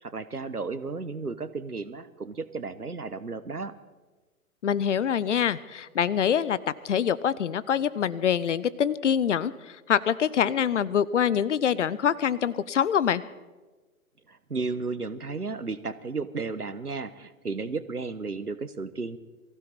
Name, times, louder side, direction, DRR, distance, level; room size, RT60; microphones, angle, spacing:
voice 1, 0.0-3.7 14.3-19.2, right 4 dB, 90° right, 14 dB, 1.1 m, -33 dB
voice 2, 4.6-6.6 6.8-13.2, left 8 dB, 55° left, 18 dB, 0.8 m, -25 dB
22.5 x 15.5 x 4.2 m, 1.3 s
figure-of-eight pair, 120°, 44 cm